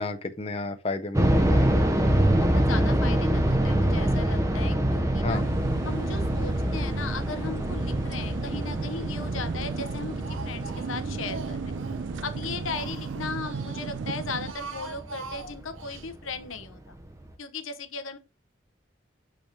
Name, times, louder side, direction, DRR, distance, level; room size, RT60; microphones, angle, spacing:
voice 1, 0.0-1.6 5.2-5.4, left 3 dB, 30° left, 0.6 m, -32 dB
sound 1, 1.1-16.0 16.3-16.4 17.0-17.3, right 1 dB, 15° right, 0.8 m, -26 dB
voice 2, 2.3-5.4 5.8-11.8 12.2-17.0 17.4-18.2, left 4 dB, 85° left, 0.9 m, -37 dB
sound 2, 5.3-14.5, right 5 dB, 65° right, 0.4 m, -36 dB
Speech, 8.2-8.9 9.2-12.0 12.4-13.9 14.3-16.1, right 4 dB, 90° right, 1.0 m, -43 dB
6.5 x 5.8 x 2.9 m
head